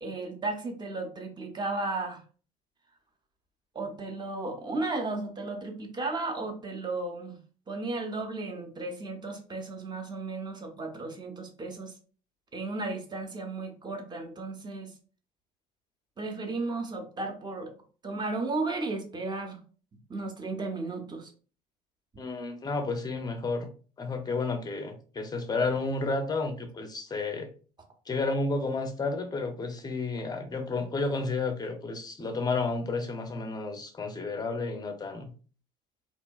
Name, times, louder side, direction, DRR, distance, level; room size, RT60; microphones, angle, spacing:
voice 1, 0.0-2.2 3.7-7.4 7.7-11.9 12.5-14.9 16.2-17.7 18.0-19.6 20.1-21.3, right 3 dB, 20° right, 3 dB, 0.7 m, -34 dB
voice 2, 22.2-23.7 24.0-27.5 28.1-35.3, left 3 dB, 20° left, 6 dB, 0.6 m, -31 dB
2.8 x 2.1 x 2.3 m, 0.38 s
figure-of-eight pair, 65°, 21 cm